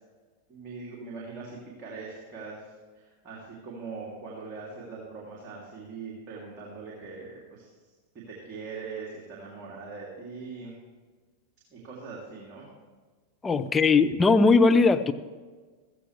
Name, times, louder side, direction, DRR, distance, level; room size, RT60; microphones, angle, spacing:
voice 1, 0.5-2.6 2.9-7.7 8.1-10.7 11.7-12.6, right 4 dB, 30° right, -5 dB, 3.0 m, -41 dB
voice 2, 13.4-15.1, left 4 dB, 15° left, 9 dB, 0.6 m, -19 dB
15.5 x 14.5 x 3.3 m, 1.4 s
figure-of-eight pair, 90°, 0 cm